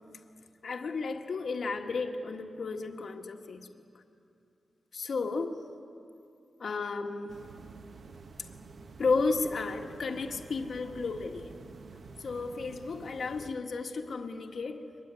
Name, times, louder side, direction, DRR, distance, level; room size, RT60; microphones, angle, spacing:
voice 1, 0.6-3.7 4.9-5.6 6.6-7.4 9.0-11.5 12.2-14.9, left 4 dB, 60° left, 4 dB, 1.6 m, -33 dB
sound 1, 7.3-13.5, right 4 dB, 60° right, 1.3 m, -49 dB
24.5 x 21.5 x 9.8 m, 2.5 s
wide cardioid pair, 150°, 0 cm